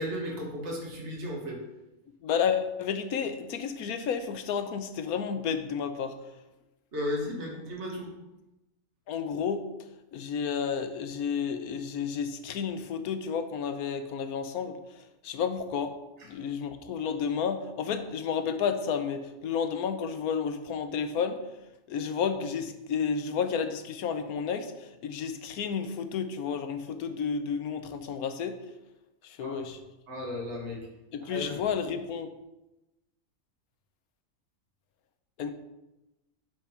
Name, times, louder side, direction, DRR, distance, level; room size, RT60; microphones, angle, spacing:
voice 1, 0.0-1.6 6.9-8.1 29.4-29.6 30.1-30.8 31.3-31.6, left 1 dB, 45° right, -2 dB, 2.1 m, -34 dB
voice 2, 2.2-6.1 9.1-9.7 10.1-14.8 15.2-16.0 16.2-21.4 21.9-28.6 29.2-29.8 31.1-32.3 35.4-35.5, left 6 dB, 75° left, 9 dB, 1.2 m, -31 dB
7.9 x 5.0 x 5.7 m, 0.99 s
omnidirectional pair, 1.6 m